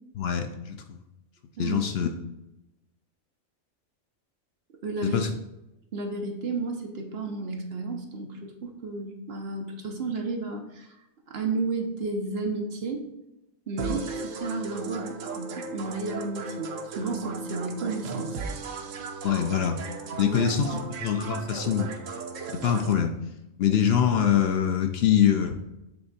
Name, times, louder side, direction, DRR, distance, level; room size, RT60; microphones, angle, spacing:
voice 1, 0.2-1.0 1.6-2.1 5.0-5.3 19.2-19.8 20.2-21.9 22.6-23.2 23.6-25.6, left 8 dB, 65° left, 6 dB, 0.7 m, -24 dB
voice 2, 4.8-5.2 5.9-10.9 11.3-13.0 13.7-18.4 20.1-20.4 20.7-20.8, right 3 dB, 55° right, 2 dB, 1.1 m, -32 dB
sound 1, 13.8-22.9, right 4 dB, 85° right, 1.1 m, -36 dB
7.8 x 3.4 x 4.1 m, 0.93 s
omnidirectional pair, 1.3 m